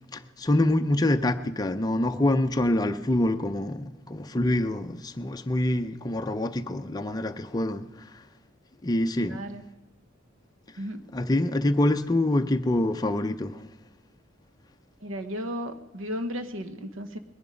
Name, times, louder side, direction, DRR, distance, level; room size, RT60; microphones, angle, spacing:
voice 1, 0.1-7.8 8.8-9.4 11.1-13.6, left 1 dB, 20° left, 0.5 m, -25 dB
voice 2, 9.3-9.6 10.8-11.0 15.0-17.2, equal, 85° right, 1.1 m, -34 dB
20.5 x 11.0 x 5.1 m
head